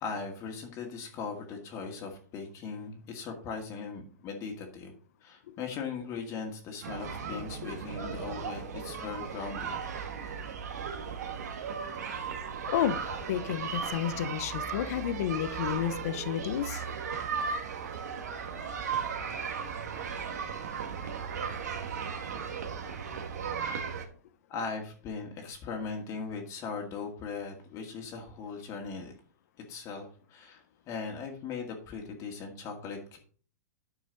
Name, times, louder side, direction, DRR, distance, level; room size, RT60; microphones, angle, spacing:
voice 1, 0.0-4.9 5.2-9.8 24.5-29.1 29.7-33.2, left 5 dB, 35° left, 2 dB, 2.0 m, -39 dB
sound 1, 6.8-24.1, right 6 dB, 80° right, 1.9 m, -36 dB
voice 2, 12.7-16.8, left 10 dB, 65° left, 12 dB, 0.8 m, -31 dB
9.8 x 6.1 x 4.1 m, 0.44 s
hypercardioid pair, 125°, 9 cm